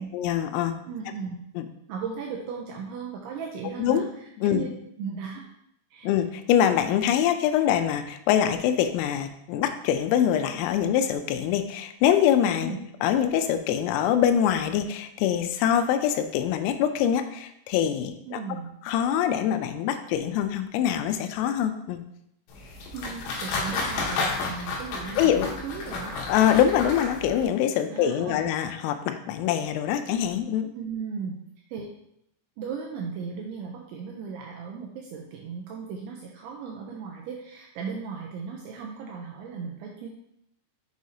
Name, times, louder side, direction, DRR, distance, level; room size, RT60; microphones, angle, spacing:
voice 1, 0.1-0.8 1.6-1.7 3.8-4.0 4.4-4.6 6.0-12.7 13.0-18.4 18.9-22.0 25.2-25.5 26.3-30.7, left 9 dB, 85° left, 9 dB, 3.2 m, -24 dB
voice 2, 0.8-1.4 1.9-4.7 5.0-5.5 5.9-6.1 12.6-12.8 18.3-18.7 22.9-26.2 27.9-28.4 30.7-31.4 31.7-31.9 32.6-40.1, right 5 dB, 85° right, 0 dB, 2.7 m, -36 dB
sound 1, 22.5-27.4, left 3 dB, 70° left, 2.8 m, -31 dB
7.0 x 6.3 x 2.7 m, 0.77 s
omnidirectional pair, 6.0 m